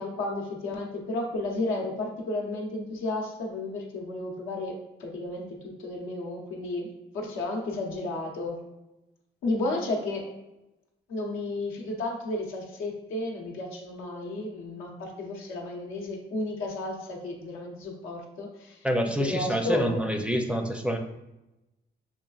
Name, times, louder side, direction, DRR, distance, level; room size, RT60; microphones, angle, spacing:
voice 1, 0.0-8.6 9.4-10.3 11.1-18.9 19.2-20.1, left 2 dB, 90° left, 0 dB, 0.8 m, -33 dB
voice 2, 18.8-21.0, equal, 5° right, 3 dB, 0.4 m, -27 dB
5.8 x 2.4 x 2.4 m, 0.96 s
cardioid pair, 90°, 20 cm